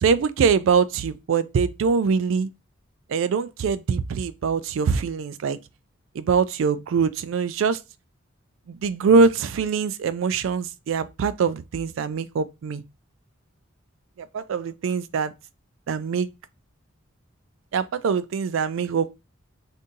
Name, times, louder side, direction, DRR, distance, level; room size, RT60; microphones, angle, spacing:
voice 1, 0.0-2.5 3.1-5.6 6.2-7.8 8.7-12.8 14.3-15.3 15.9-16.3 17.7-19.2, right 5 dB, 65° right, 0.3 m, -23 dB
2.7 x 2.5 x 3.7 m
head